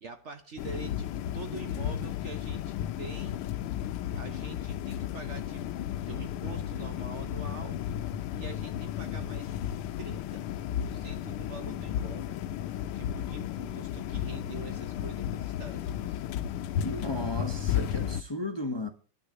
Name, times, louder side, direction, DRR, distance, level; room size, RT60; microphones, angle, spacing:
voice 1, 0.0-3.4 4.1-7.8 8.4-9.6 10.0-10.5 10.8-12.4 12.9-16.2, right 4 dB, 55° right, 0.8 m, -45 dB
sound 1, 0.6-18.2, left 10 dB, 80° left, 1.6 m, -34 dB
sound 2, 11.3-15.3, right 2 dB, 85° right, 3.9 m, -63 dB
voice 2, 16.8-18.9, left 1 dB, 20° left, 0.6 m, -34 dB
10.0 x 6.4 x 9.0 m
omnidirectional pair, 2.4 m